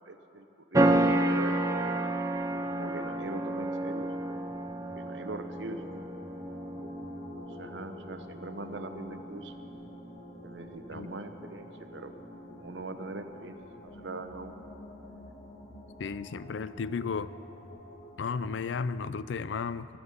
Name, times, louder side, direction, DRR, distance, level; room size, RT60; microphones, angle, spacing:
voice 1, 0.1-0.4 0.7-1.5 2.7-4.5 5.0-6.0 7.4-9.5 10.4-12.1 12.5-14.6, right 2 dB, 75° right, 8 dB, 0.9 m, -41 dB
sound 1, 0.7-13.1, right 1 dB, 20° right, 0.5 m, -32 dB
sound 2, 2.4-18.4, left 2 dB, 50° left, 1.6 m, -50 dB
voice 2, 16.0-17.3 18.2-19.9, left 5 dB, 75° left, 16 dB, 0.4 m, -33 dB
15.0 x 13.0 x 5.5 m, 2.9 s
head